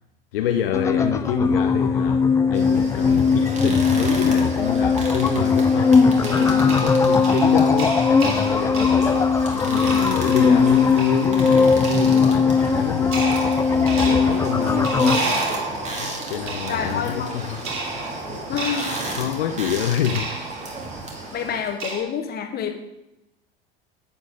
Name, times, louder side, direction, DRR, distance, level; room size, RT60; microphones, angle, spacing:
voice 1, 0.3-13.2 13.7-15.4 15.9-17.7 18.3-18.8 19.1-20.3 21.1-21.3, left 10 dB, 65° left, 0.7 m, -27 dB
sound 1, 0.7-15.2, left 5 dB, 10° left, 0.4 m, -19 dB
sound 2, 2.5-21.7, right 2 dB, 25° right, 2.2 m, -34 dB
sound 3, 6.2-22.0, right 3 dB, 45° right, 2.8 m, -32 dB
voice 2, 16.7-17.4 18.5-19.1 21.3-22.7, left 7 dB, 30° left, 1.3 m, -28 dB
10.5 x 8.0 x 3.7 m
figure-of-eight pair, 80°, 30 cm